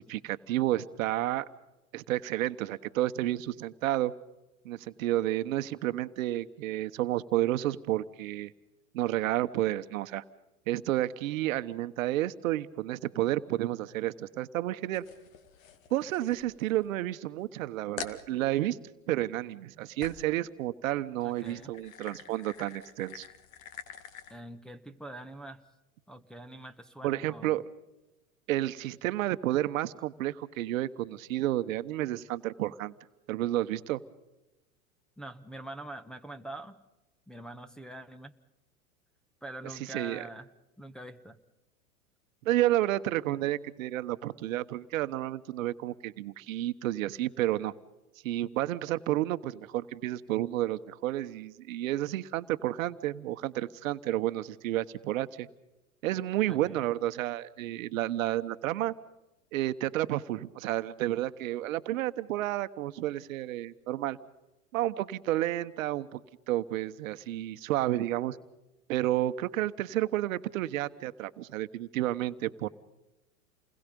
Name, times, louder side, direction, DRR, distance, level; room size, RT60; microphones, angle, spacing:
voice 1, 0.0-1.4 1.9-4.1 4.6-8.5 8.9-10.2 10.7-15.0 15.9-18.8 19.1-23.3 27.0-27.6 28.5-32.9 33.3-34.0 39.9-40.2 42.4-47.7 48.2-55.5 56.0-58.9 59.5-64.2 64.7-66.2 66.5-68.4 68.9-72.7, right 14 dB, 65° right, 12 dB, 1.2 m, -31 dB
sound 1, 14.9-17.0 17.4-17.5 18.0-18.3 20.0-20.4 21.1-24.4, left 7 dB, 65° left, 2.2 m, -46 dB
voice 2, 21.2-21.7 24.3-25.6 26.1-27.6 35.2-36.8 37.3-38.3 39.4-40.5 40.8-41.4 56.5-56.9, right 1 dB, ahead, 3 dB, 1.2 m, -44 dB
29.0 x 21.0 x 5.4 m, 1.0 s
hypercardioid pair, 110°, 43 cm